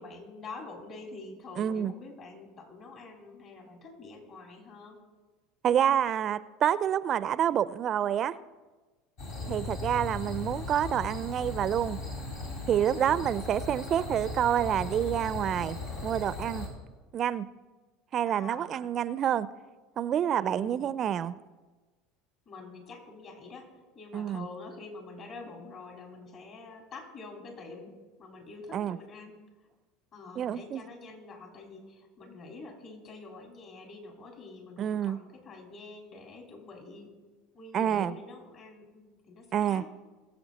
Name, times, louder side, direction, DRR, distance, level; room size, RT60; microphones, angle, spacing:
voice 1, 0.0-5.0 9.4-9.7 12.9-13.3 18.2-18.7 20.4-20.9 22.5-23.7 23.9-27.9 28.2-29.4 30.1-37.1 37.5-39.8, left 3 dB, 50° left, 1 dB, 4.0 m, -46 dB
voice 2, 1.6-1.9 5.6-8.4 9.5-12.0 12.7-16.7 17.1-17.5 18.1-19.5 20.0-21.4 24.1-24.5 28.7-29.0 30.4-30.8 34.8-35.2 37.7-38.1 39.5-39.8, right 9 dB, 45° right, 17 dB, 0.4 m, -28 dB
sound 1, 9.2-16.7, left 2 dB, 75° left, 3.4 m, -38 dB
20.5 x 8.0 x 4.1 m, 1.3 s
hypercardioid pair, 80°, 0 cm